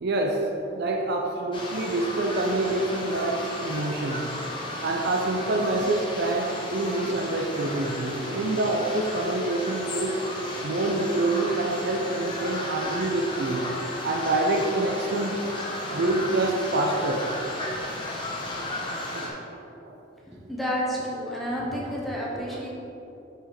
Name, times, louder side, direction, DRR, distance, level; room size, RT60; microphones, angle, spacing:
voice 1, 0.0-4.3 4.8-10.2 10.6-13.7 14.0-15.5 15.9-17.3 18.6-18.8 19.1-19.4 19.8-20.0 21.8-21.9 22.3-22.6, right 2 dB, 60° right, 2 dB, 0.5 m, -27 dB
sound 1, 1.5-19.3, left 1 dB, 25° left, 0.9 m, -34 dB
voice 2, 20.3-22.7, equal, ahead, -5 dB, 1.0 m, -30 dB
5.6 x 5.0 x 4.3 m, 2.9 s
head